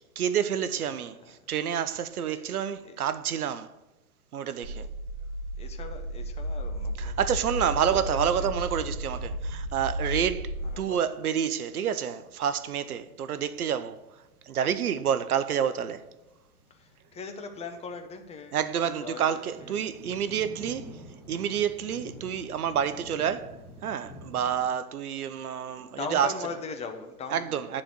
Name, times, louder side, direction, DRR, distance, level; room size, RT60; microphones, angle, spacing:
voice 1, 0.2-3.7 4.3-4.9 7.0-14.0 14.5-16.1 18.5-26.3 27.3-27.8, right 8 dB, 80° right, 0.8 m, -29 dB
voice 2, 0.9-1.3 2.3-2.5 2.8-3.0 5.6-7.2 7.8-8.5 10.6-11.0 16.7-18.6 18.8-19.9 25.7-27.6, left 4 dB, 15° left, 1.0 m, -40 dB
sound 1, 4.6-10.8, equal, 50° right, 2.1 m, -34 dB
sound 2, 10.4-24.7, equal, 5° right, 2.1 m, -50 dB
10.0 x 4.3 x 7.5 m
hypercardioid pair, 120°, 44 cm